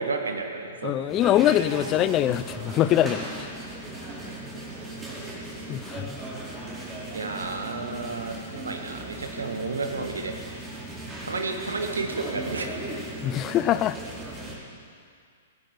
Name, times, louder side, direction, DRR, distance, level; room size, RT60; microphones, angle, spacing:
voice 1, 0.0-1.0 7.1-10.4 11.2-12.7, right 3 dB, 80° right, 4 dB, 1.9 m, -31 dB
voice 2, 0.8-3.5 5.7-6.2 13.2-14.0, left 12 dB, 30° left, 16 dB, 0.5 m, -23 dB
sound 1, 1.1-14.6, right 2 dB, 20° right, 4.5 m, -37 dB
22.0 x 9.7 x 6.5 m, 2.2 s
figure-of-eight pair, 110°, 0 cm